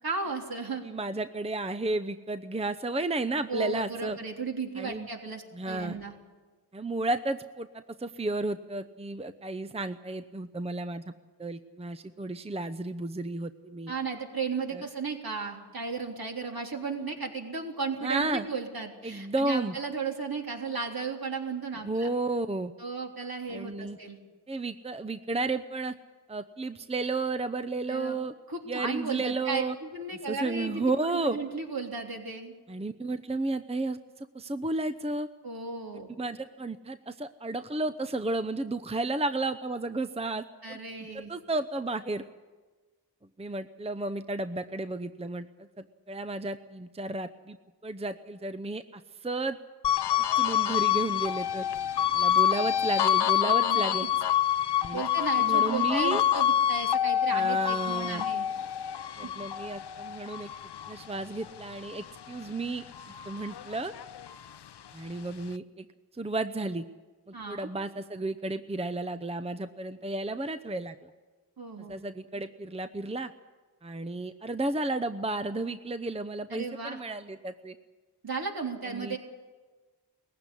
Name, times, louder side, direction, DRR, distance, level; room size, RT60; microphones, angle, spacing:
voice 1, 0.0-0.8 3.5-6.1 13.9-22.1 22.8-24.2 27.9-28.2 28.5-32.5 35.4-36.1 40.6-41.3 53.5-54.1 54.9-58.5 67.3-67.7 71.6-72.0 76.5-77.0 78.2-79.2, right 4 dB, 55° right, 1 dB, 3.6 m, -35 dB
voice 2, 0.8-4.2 4.8-5.1 5.5-6.0 6.7-11.0 11.4-13.9 14.7-14.8 18.0-18.5 19.0-19.7 21.8-22.7 23.5-24.0 24.5-25.9 26.3-28.3 28.7-29.7 30.3-31.4 32.7-35.3 36.2-40.8 41.1-42.2 43.4-45.5 45.8-47.6 47.8-49.6 50.4-51.7 52.1-54.1 54.8-55.0 55.4-56.2 57.3-58.2 59.2-60.5 60.9-62.8 63.3-63.9 64.9-65.9 66.1-66.8 67.3-71.1 71.9-73.3 73.8-77.8 78.9-79.2, right 2 dB, 15° right, 11 dB, 0.8 m, -32 dB
sound 1, 49.8-62.5 62.9-64.6, left 10 dB, 70° left, 0.7 m, -27 dB
19.5 x 15.5 x 9.9 m, 1.3 s
cardioid pair, 55°, 42 cm